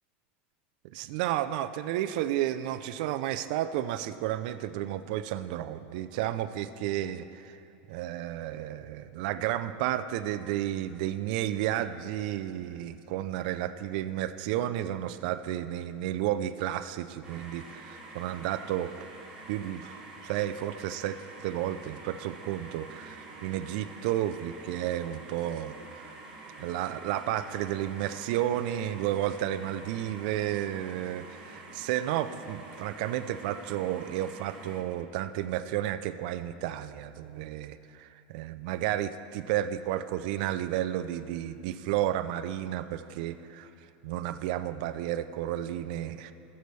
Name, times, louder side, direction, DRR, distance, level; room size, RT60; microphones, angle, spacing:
voice 1, 0.9-7.6 7.9-18.9 19.5-26.1 26.6-43.7 44.0-46.3, right 12 dB, 60° right, 11 dB, 0.4 m, -32 dB
sound 1, 17.2-34.8, right 3 dB, 15° right, 2.5 m, -47 dB
19.0 x 6.8 x 3.2 m, 2.9 s
supercardioid pair, 155°, 5 cm